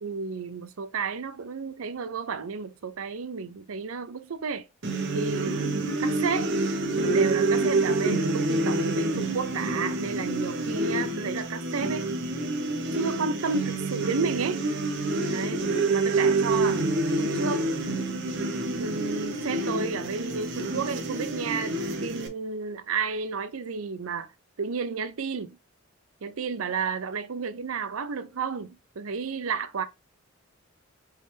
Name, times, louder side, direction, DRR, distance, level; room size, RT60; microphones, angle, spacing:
voice 1, 0.0-4.7 5.1-5.6 6.0-6.5 7.1-12.1 12.9-14.7 15.3-15.6 15.9-16.8 17.2-17.7 18.8-21.7 22.0-24.3 24.6-25.6 26.2-29.8, right 5 dB, 80° right, 0.6 m, -32 dB
sound 1, 4.8-22.3, right 2 dB, 60° right, 1.0 m, -27 dB
4.7 x 3.3 x 3.3 m
head